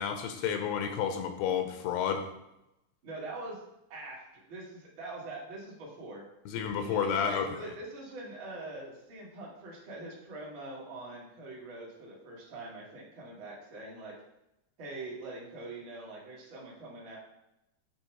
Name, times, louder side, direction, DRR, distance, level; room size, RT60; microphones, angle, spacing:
voice 1, 0.0-2.2 6.5-7.5, left 7 dB, 85° left, 6 dB, 2.6 m, -30 dB
voice 2, 3.0-3.6 3.9-6.2 6.7-14.1 14.8-17.2, right 2 dB, 45° right, -4 dB, 1.6 m, -43 dB
8.4 x 3.4 x 4.5 m, 0.88 s
omnidirectional pair, 4.7 m